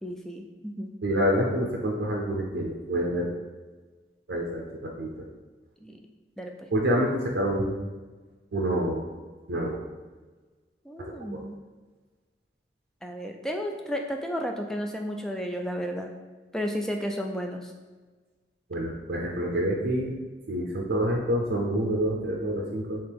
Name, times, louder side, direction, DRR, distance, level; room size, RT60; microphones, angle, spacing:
voice 1, 0.0-0.9 5.8-6.0 6.4-6.7 10.8-11.6 13.0-16.1 16.5-17.7, equal, 5° left, 3 dB, 0.3 m, -33 dB
voice 2, 1.0-3.3 4.3-5.3 6.7-7.8 8.5-9.0 9.5-9.8 11.0-11.1 18.7-20.2 20.5-23.0, equal, 75° right, -1 dB, 0.6 m, -27 dB
3.5 x 3.0 x 4.7 m, 1.3 s
head